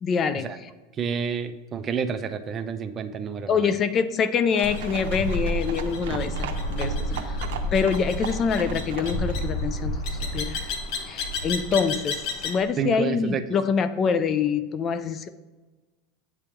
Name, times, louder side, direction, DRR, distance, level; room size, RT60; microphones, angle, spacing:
voice 1, 0.0-0.5 3.5-7.4 7.7-10.7 11.1-15.3, left 6 dB, 30° left, 12 dB, 0.4 m, -25 dB
voice 2, 1.0-3.8 12.8-13.4, right 7 dB, 25° right, 9 dB, 0.5 m, -29 dB
sound 1, 4.5-9.5, right 8 dB, 80° right, 0.7 m, -38 dB
sound 2, 4.6-12.6, left 1 dB, 55° left, 1.1 m, -30 dB
sound 3, 6.0-11.6, right 7 dB, 45° right, 0.9 m, -44 dB
8.5 x 3.5 x 4.5 m, 1.3 s
supercardioid pair, 140°, 0 cm